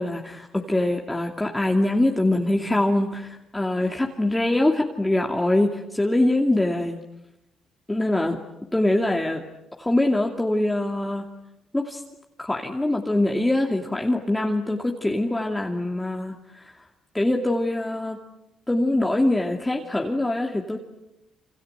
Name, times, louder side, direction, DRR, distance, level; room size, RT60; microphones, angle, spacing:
voice 1, 0.0-7.0 7.9-8.4 8.7-9.4 9.8-11.3 11.7-12.0 12.4-16.3 17.1-18.2 18.7-20.8, left 1 dB, 10° left, 1 dB, 2.6 m, -23 dB
27.5 x 26.5 x 8.0 m, 0.87 s
cardioid pair, 90°, 0 cm